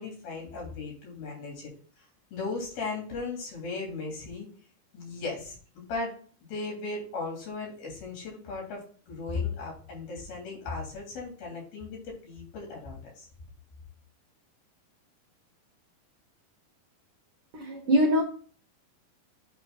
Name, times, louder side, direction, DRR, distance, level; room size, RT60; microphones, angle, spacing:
voice 1, 0.0-1.7 2.3-4.5 4.9-6.1 6.5-13.3, left 3 dB, 70° left, -2 dB, 5.0 m, -36 dB
voice 2, 17.5-18.2, equal, 75° right, 2 dB, 1.3 m, -23 dB
8.9 x 3.4 x 5.5 m, 0.43 s
omnidirectional pair, 4.4 m